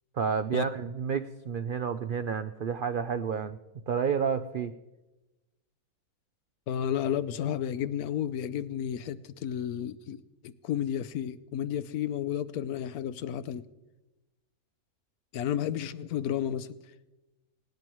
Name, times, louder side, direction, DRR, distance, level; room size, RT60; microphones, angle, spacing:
voice 1, 0.1-3.6 3.9-4.7, right 6 dB, 80° right, 10 dB, 0.4 m, -30 dB
voice 2, 6.7-13.6 15.3-16.8, left 10 dB, 75° left, 14 dB, 1.2 m, -32 dB
19.5 x 18.0 x 3.1 m, 1.1 s
omnidirectional pair, 1.6 m